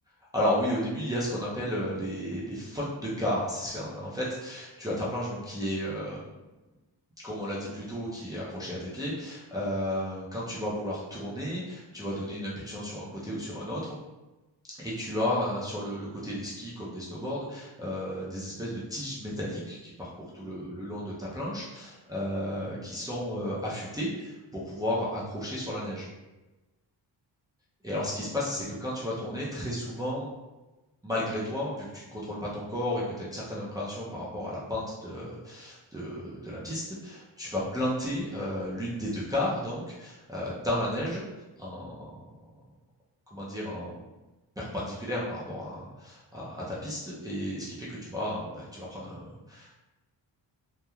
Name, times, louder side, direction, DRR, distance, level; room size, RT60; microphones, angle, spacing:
voice 1, 0.3-6.2 7.2-14.0 14.8-26.1 27.8-30.3 31.0-41.2 41.6-42.1 43.3-43.9 44.6-49.7, left 1 dB, 10° right, -7 dB, 0.5 m, -33 dB
3.0 x 2.1 x 2.3 m, 1.1 s
cardioid pair, 110°, 44 cm